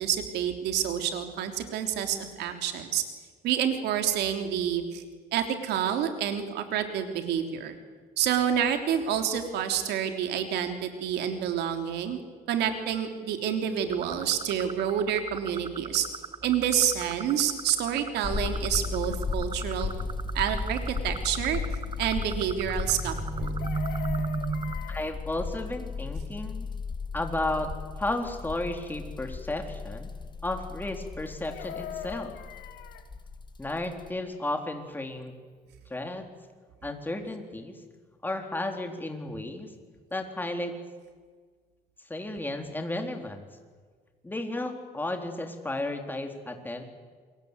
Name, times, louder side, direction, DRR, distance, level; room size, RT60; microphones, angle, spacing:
voice 1, 0.0-3.0 3.4-5.0 5.3-7.8 8.2-12.2 12.5-16.1 16.4-19.9 20.3-21.6 22.0-23.5, right 9 dB, 80° right, 6 dB, 3.5 m, -28 dB
sound 1, 13.9-24.8, right 4 dB, 30° right, 1.1 m, -37 dB
sound 2, 18.2-34.1, left 4 dB, 25° left, 1.8 m, -35 dB
Chicken rooster, 23.3-25.2 31.2-33.1 35.3-35.4 35.7-35.9, left 10 dB, 80° left, 2.1 m, -41 dB
voice 2, 24.9-26.7 27.1-27.7 28.0-30.1 30.4-32.3 33.6-35.3 35.9-36.2 36.8-37.8 38.2-39.7 40.1-40.7 42.1-43.5 44.2-46.8, left 2 dB, 10° left, 4 dB, 3.9 m, -33 dB
28.5 x 22.5 x 8.3 m, 1.5 s
cardioid pair, 110°, 17 cm